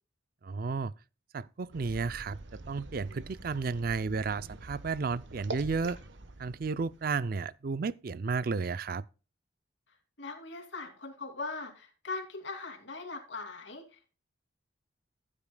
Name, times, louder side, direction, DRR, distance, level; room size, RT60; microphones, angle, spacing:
voice 1, 0.4-0.9 1.3-6.0 6.4-9.0, right 4 dB, 50° right, 0.4 m, -33 dB
sound 1, 1.7-7.5, right 2 dB, 65° right, 1.1 m, -45 dB
voice 2, 10.2-14.1, left 3 dB, 65° left, 2.7 m, -40 dB
15.0 x 8.6 x 2.2 m
head